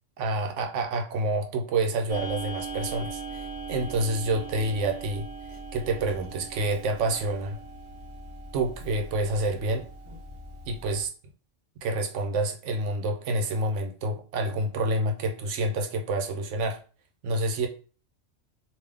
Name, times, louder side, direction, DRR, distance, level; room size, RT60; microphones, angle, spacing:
voice 1, 0.2-5.3 5.7-7.6 8.5-9.9 10.7-11.1 11.8-16.8 17.2-17.7, right 2 dB, 90° right, 5 dB, 1.0 m, -28 dB
Clock, 2.1-11.0, right 3 dB, 25° right, 1.0 m, -40 dB
3.6 x 2.7 x 3.3 m, 0.38 s
omnidirectional pair, 1.2 m